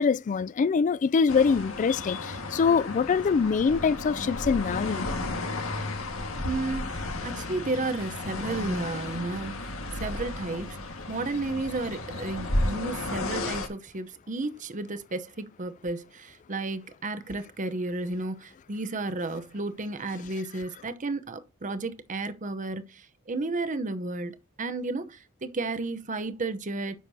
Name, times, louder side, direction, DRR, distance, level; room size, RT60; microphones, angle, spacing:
voice 1, 0.0-5.1, left 5 dB, 35° left, 0.3 m, -24 dB
sound 1, 1.3-13.7, left 2 dB, 85° left, 1.7 m, -33 dB
voice 2, 6.4-27.0, right 2 dB, 40° right, 0.8 m, -33 dB
10.0 x 6.5 x 2.8 m
head